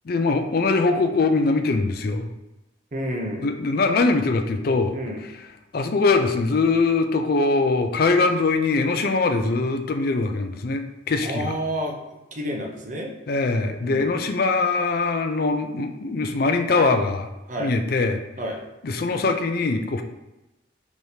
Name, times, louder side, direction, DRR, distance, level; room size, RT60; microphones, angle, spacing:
voice 1, 0.1-2.3 3.4-5.0 5.7-11.5 13.3-17.3 17.6-18.2 18.8-20.0, left 3 dB, 50° left, 6 dB, 0.4 m, -22 dB
voice 2, 2.9-3.5 4.9-5.2 11.2-13.1 13.8-14.2 17.5-17.7 18.4-18.6, equal, 40° right, 1 dB, 0.6 m, -30 dB
4.9 x 3.0 x 2.7 m, 0.99 s
head